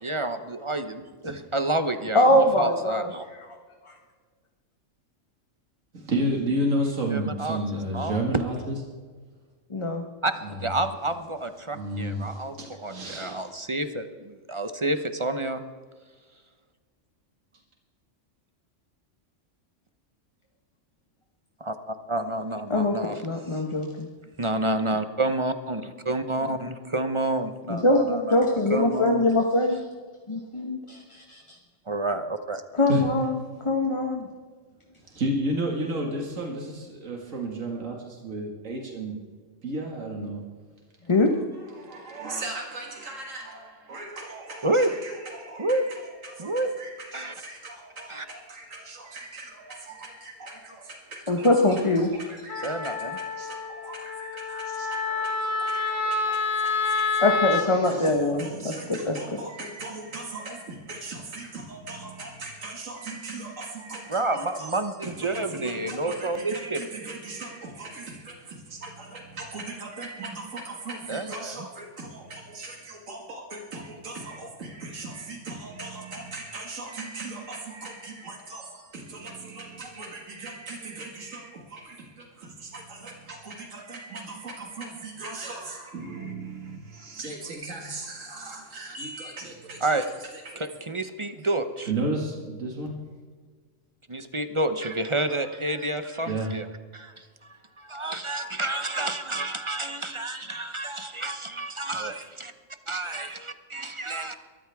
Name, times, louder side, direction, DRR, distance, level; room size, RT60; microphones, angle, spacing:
voice 1, 0.0-1.0 1.5-3.2 7.1-8.2 10.2-10.3 10.6-12.6 12.8-15.6 21.6-23.2 23.5-23.6 24.4-28.4 28.7-29.3 31.9-32.6 44.6-44.9 45.6-45.9 46.4-46.7 47.1-47.3 48.1-48.2 52.6-53.2 64.1-66.8 71.1-71.7 88.9-89.0 89.8-90.1 90.6-91.9 94.1-96.7 96.9-102.5 102.9-104.3, right 2 dB, 25° right, 9 dB, 0.8 m, -29 dB
voice 2, 2.1-3.1 9.7-10.0 22.7-24.1 27.7-29.8 30.3-31.4 32.7-34.3 41.1-41.3 51.3-52.1 57.2-59.4, left 1 dB, 25° left, 2 dB, 1.2 m, -23 dB
voice 3, 5.9-8.8 10.4-10.7 11.7-13.5 32.9-33.0 35.1-39.1 39.6-40.4 41.6-55.1 55.7-64.7 65.0-90.1 90.4-90.6 91.9-93.0 96.3-96.5, right 1 dB, 80° right, 0 dB, 2.5 m, -35 dB
Wind instrument woodwind instrument, 52.5-57.7, left 4 dB, 90° left, 1.7 m, -28 dB
22.5 x 14.0 x 3.6 m, 1.5 s
omnidirectional pair, 1.3 m